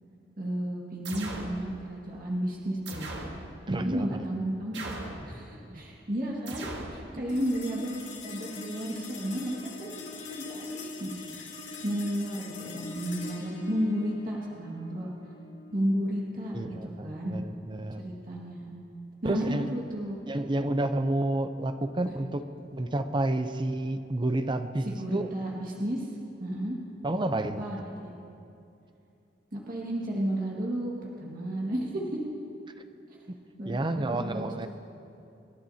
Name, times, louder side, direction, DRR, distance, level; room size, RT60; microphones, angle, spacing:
voice 1, 0.4-3.1 3.7-5.0 5.3-9.9 10.3-11.2 11.8-15.1 15.7-17.4 18.0-18.8 19.2-20.2 24.9-26.1 26.4-26.8 27.6-28.1 29.5-30.9 31.2-32.2 33.6-34.7, equal, 50° right, -4 dB, 1.9 m, -32 dB
sound 1, 1.0-1.6 2.9-3.4 4.7-5.2 6.5-7.0, right 2 dB, 70° right, 1.7 m, -38 dB
voice 2, 3.7-4.2 5.7-5.8 7.1-7.2 16.5-18.0 19.2-19.7 20.3-22.4 22.7-25.3 27.0-27.7 33.3-33.4 33.6-34.7, right 1 dB, 25° right, 9 dB, 0.6 m, -30 dB
sound 2, 7.3-17.9, left 3 dB, 90° left, 2.4 m, -43 dB
28.5 x 12.0 x 2.8 m, 2.7 s
head